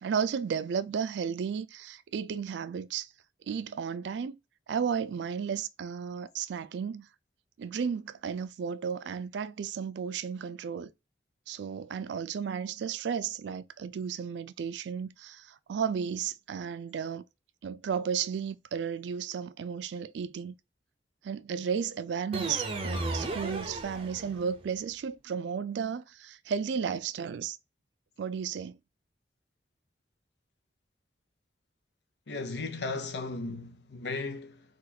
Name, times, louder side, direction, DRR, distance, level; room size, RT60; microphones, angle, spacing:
voice 1, 0.0-3.1 3.5-4.4 4.7-7.1 7.6-10.9 11.5-17.2 17.6-20.5 21.2-27.6 28.2-28.8, right 7 dB, 80° right, 0.3 m, -33 dB
sound 1, 22.3-24.6, right 2 dB, 30° right, 0.6 m, -34 dB
voice 2, 32.3-34.6, left 3 dB, 70° left, 0.6 m, -36 dB
3.9 x 2.3 x 2.7 m
head